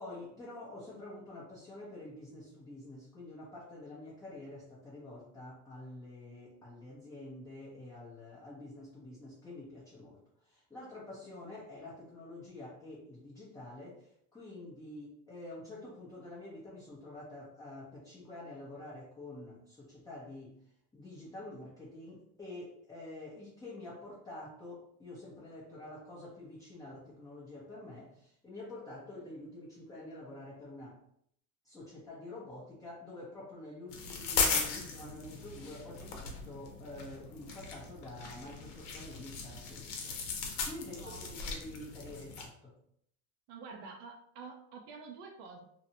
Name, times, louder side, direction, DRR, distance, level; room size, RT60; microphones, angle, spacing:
voice 1, 0.0-20.6 20.9-31.0 31.6-42.8, left 2 dB, 10° left, -6 dB, 0.4 m, -48 dB
sound 1, 33.9-42.5, left 5 dB, 70° left, 0.8 m, -37 dB
voice 2, 41.0-41.4 43.5-45.7, right 4 dB, 60° right, 2 dB, 0.6 m, -48 dB
2.8 x 2.0 x 2.6 m, 0.70 s
supercardioid pair, 110°, 46 cm